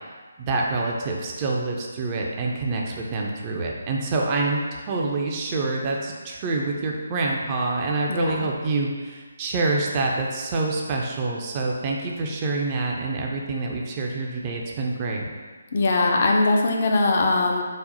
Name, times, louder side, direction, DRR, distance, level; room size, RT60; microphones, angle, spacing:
voice 1, 0.4-15.3, right 3 dB, 25° right, -1 dB, 0.4 m, -26 dB
voice 2, 15.7-17.6, left 2 dB, 45° left, 1 dB, 0.4 m, -21 dB
4.1 x 2.0 x 4.0 m, 1.4 s
figure-of-eight pair, 145°, 0 cm